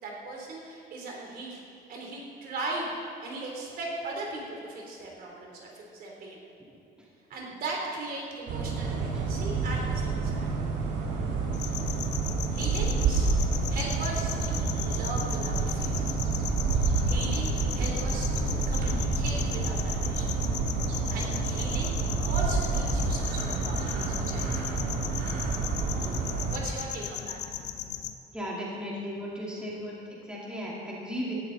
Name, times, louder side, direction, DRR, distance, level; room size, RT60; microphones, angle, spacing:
voice 1, 0.0-1.6 1.9-2.9 3.2-6.4 7.3-10.5 12.5-13.3 13.7-16.0 17.1-20.3 21.1-21.9 22.2-24.8 26.5-27.4, right 2 dB, 60° right, -1 dB, 3.1 m, -38 dB
sound 1, 8.5-26.6, right 4 dB, 85° right, 2.0 m, -29 dB
sound 2, 11.5-28.1, left 10 dB, 90° left, 0.8 m, -37 dB
Bird / Wind, 14.3-27.1, left 2 dB, 65° left, 2.9 m, -39 dB
voice 2, 28.3-31.4, equal, 5° right, -5 dB, 2.1 m, -36 dB
17.0 x 12.0 x 3.9 m, 2.7 s
cardioid pair, 160°, 17 cm